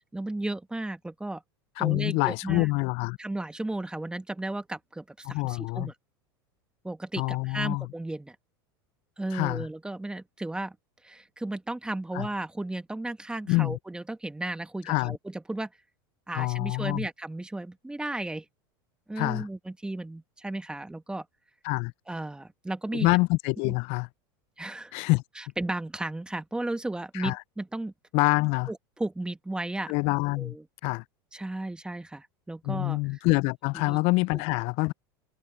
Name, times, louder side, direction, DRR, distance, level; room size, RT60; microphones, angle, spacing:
voice 1, 0.1-1.4 1.8-2.7 3.2-5.9 6.8-8.4 9.2-10.8 11.0-15.7 16.3-18.5 19.1-21.3 22.1-23.1 23.7-23.8 24.6-24.9 25.4-27.9 28.7-29.9 30.4-30.6 31.3-33.2 33.9-34.0 34.3-34.4, right 2 dB, 5° right, 2.0 m, -34 dB
voice 2, 1.8-3.2 5.2-5.9 7.2-7.9 9.3-9.7 12.1-12.3 13.5-13.8 14.9-15.2 16.3-17.1 19.2-19.5 21.6-21.9 22.9-24.1 24.9-25.2 27.1-27.4 28.1-28.7 29.9-30.6 30.8-31.0 32.6-34.9, left 25 dB, 55° left, 0.5 m, -26 dB
hypercardioid pair, 100°, 13 cm